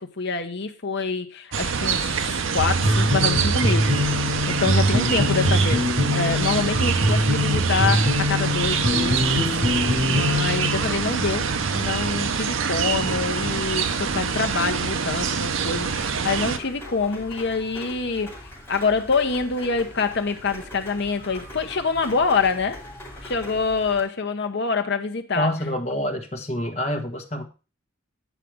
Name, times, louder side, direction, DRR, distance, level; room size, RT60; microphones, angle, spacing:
voice 1, 0.0-11.5 11.7-18.3 18.7-22.8 23.2-25.5, left 4 dB, 55° left, 0.9 m, -26 dB
sound 1, 1.5-16.6, right 6 dB, 65° right, 0.7 m, -25 dB
sound 2, 2.6-11.0, left 1 dB, 85° right, 4.1 m, -23 dB
Rain, 16.0-24.0, left 1 dB, 10° left, 2.8 m, -41 dB
voice 2, 25.3-27.4, equal, 30° left, 1.4 m, -27 dB
9.2 x 4.9 x 4.8 m
head